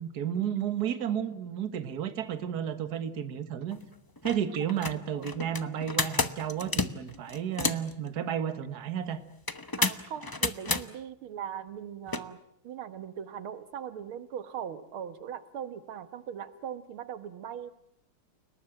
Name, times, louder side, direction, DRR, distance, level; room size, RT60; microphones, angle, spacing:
voice 1, 0.0-3.8 4.2-9.2, right 9 dB, 50° right, 11 dB, 1.9 m, -32 dB
sound 1, 3.7-3.8 4.2-4.4 4.7-7.9 9.5-10.8 12.1-12.2, left 3 dB, 35° left, 0.3 m, -30 dB
voice 2, 9.8-12.4 12.6-17.7, right 8 dB, 90° right, 13 dB, 2.1 m, -40 dB
29.5 x 19.0 x 9.0 m, 0.73 s
omnidirectional pair, 2.3 m